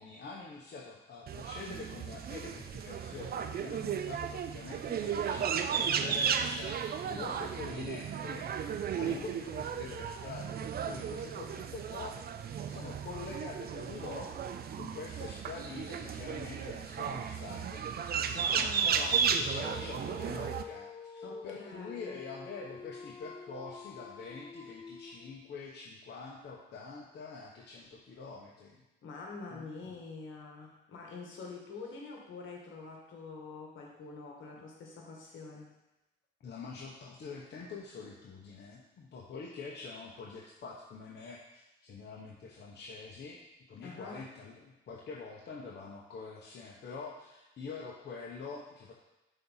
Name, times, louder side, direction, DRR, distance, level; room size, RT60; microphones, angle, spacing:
voice 1, 0.0-6.8 7.1-8.5 9.0-12.2 12.5-14.3 14.8-28.8 29.5-30.0 34.5-34.6 36.4-43.4 43.7-48.9, left 4 dB, 60° left, -4 dB, 1.1 m, -45 dB
sound 1, 1.3-20.6, right 7 dB, 50° right, 0.5 m, -34 dB
voice 2, 7.0-7.4 8.9-9.2 18.5-18.9 21.2-22.2 29.0-35.7 43.8-44.2, left 4 dB, 75° left, -1 dB, 1.7 m, -46 dB
Dog, 19.2-25.5, left 5 dB, 25° left, 0.5 m, -47 dB
5.6 x 4.1 x 5.6 m, 0.98 s
cardioid pair, 90°, 20 cm